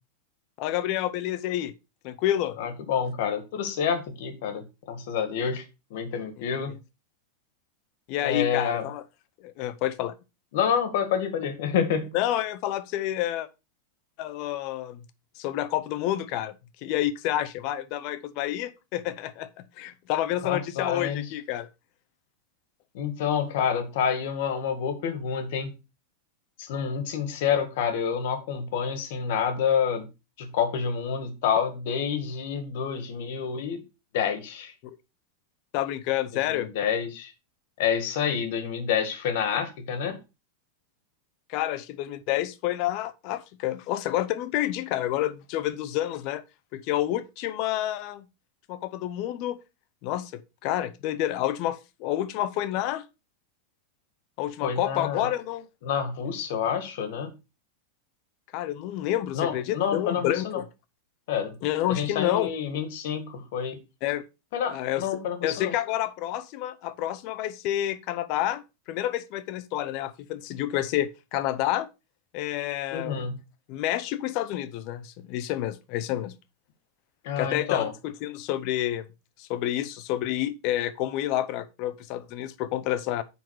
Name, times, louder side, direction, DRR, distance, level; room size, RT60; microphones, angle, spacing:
voice 1, 0.6-1.7 2.0-2.6 8.1-9.0 9.4-10.1 12.1-13.5 14.2-15.0 15.4-16.6 16.8-21.7 34.8-35.0 35.7-36.7 41.5-46.4 46.7-48.3 48.7-49.6 50.0-53.1 54.4-55.7 58.5-60.6 61.6-62.5 64.0-64.2 64.7-65.1 65.4-68.6 68.9-71.9 72.3-73.2 73.7-76.3 77.4-79.0 79.4-83.2, left 13 dB, 40° left, 0.7 m, -29 dB
voice 2, 2.6-5.6 5.9-6.7 8.2-8.8 10.5-12.1 20.4-21.3 22.9-25.7 26.6-30.1 30.4-33.8 34.1-34.7 36.5-37.3 37.8-40.2 54.6-55.3 55.8-57.3 59.3-60.6 61.3-61.5 61.9-63.8 64.5-65.7 72.9-73.3 77.2-77.9, left 7 dB, 55° left, 1.8 m, -28 dB
9.3 x 4.0 x 4.7 m
supercardioid pair, 170°, 0 cm